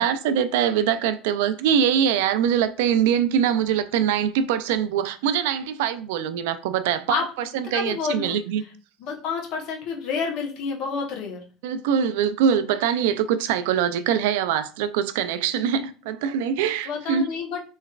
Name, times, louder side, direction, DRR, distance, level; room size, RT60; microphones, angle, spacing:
voice 1, 0.0-7.2 7.5-8.6 11.6-17.3, right 8 dB, 85° right, 0.3 m, -23 dB
voice 2, 7.6-8.4 9.0-11.4 16.8-17.6, left 5 dB, 60° left, 0.9 m, -29 dB
3.2 x 3.0 x 2.4 m
supercardioid pair, 135°, 0 cm